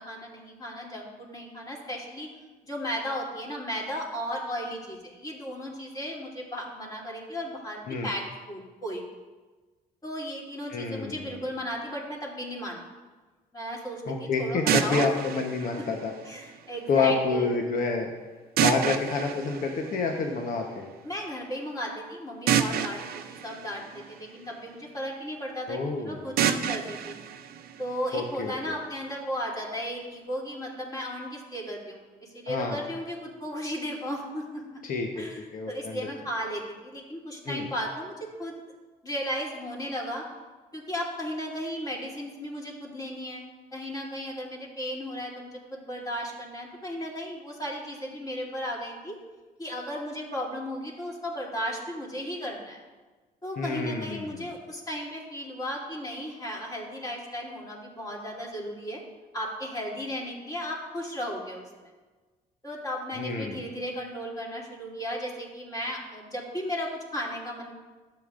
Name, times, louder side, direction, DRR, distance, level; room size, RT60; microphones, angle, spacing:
voice 1, 0.0-2.3 2.6-9.0 10.0-12.8 13.5-15.2 15.7-17.5 21.0-27.1 27.8-34.8 35.2-38.6 39.0-40.2 40.7-49.2 49.6-52.8 53.4-59.0 59.3-61.9 62.6-67.7, equal, 25° left, -3 dB, 2.9 m, -35 dB
voice 2, 10.7-11.4 14.1-16.1 16.9-18.1 18.6-20.9 25.7-26.2 28.1-28.5 32.5-32.8 34.9-35.2 35.5-36.1 37.4-37.7 53.6-54.4 63.2-63.6, left 4 dB, 60° left, 2 dB, 1.0 m, -28 dB
sound 1, 14.7-16.7 18.6-20.5 22.5-24.7 26.4-28.4, right 9 dB, 70° right, 0.6 m, -29 dB
12.0 x 7.8 x 2.5 m, 1.3 s
cardioid pair, 80°, 16 cm